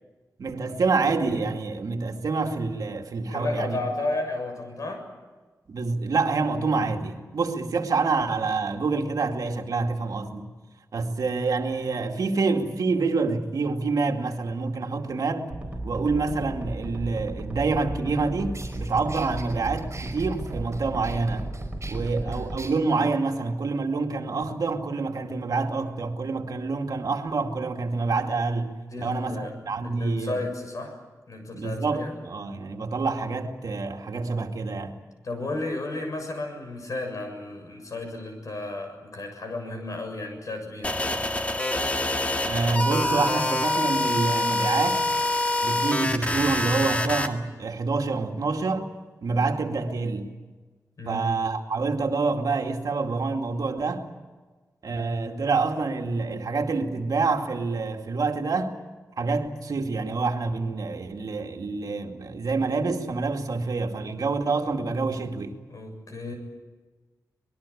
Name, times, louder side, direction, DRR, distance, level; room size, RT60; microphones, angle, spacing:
voice 1, 0.4-3.8 5.7-10.5 10.9-15.5 15.8-21.5 21.9-28.7 29.0-30.4 31.5-35.0 42.5-45.0 45.6-48.9 49.2-50.3 51.1-54.1 54.8-58.8 59.2-65.5, right 4 dB, 70° right, 2.3 m, -27 dB
voice 2, 3.3-5.0 21.9-22.5 28.9-29.6 29.8-31.0 31.3-32.2 35.2-40.9 51.0-51.3 65.7-66.3, left 2 dB, 60° left, 7.0 m, -33 dB
sound 1, 15.5-22.6, right 1 dB, 15° right, 4.1 m, -34 dB
sound 2, 18.1-18.2 18.5-22.7, right 3 dB, 45° right, 5.4 m, -44 dB
sound 3, 40.8-47.3, left 2 dB, 20° left, 1.9 m, -25 dB
25.5 x 20.5 x 8.6 m
wide cardioid pair, 135°, 6 cm